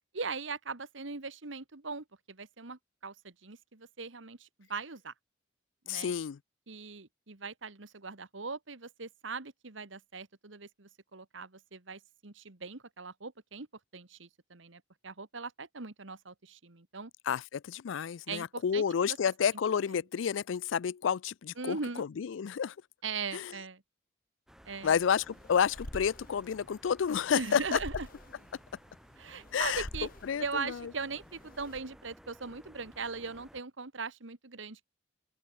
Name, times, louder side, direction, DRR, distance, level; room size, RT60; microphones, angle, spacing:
voice 1, 0.1-5.1 5.8-6.1 6.7-13.7 13.9-17.1 18.3-19.2 21.6-22.1 23.0-23.8 24.6-25.0 27.3-28.1 29.2-30.1 30.4-34.8, right 4 dB, 80° right, 1.6 m, -40 dB
voice 2, 5.9-6.4 17.3-22.8 23.3-23.5 24.8-27.8 29.5-29.9 30.2-30.9, left 7 dB, 80° left, 0.4 m, -30 dB
sound 1, 24.5-33.6, equal, ahead, 3.3 m, -57 dB
sound 2, 25.2-31.8, left 1 dB, 45° left, 2.7 m, -48 dB
open air
head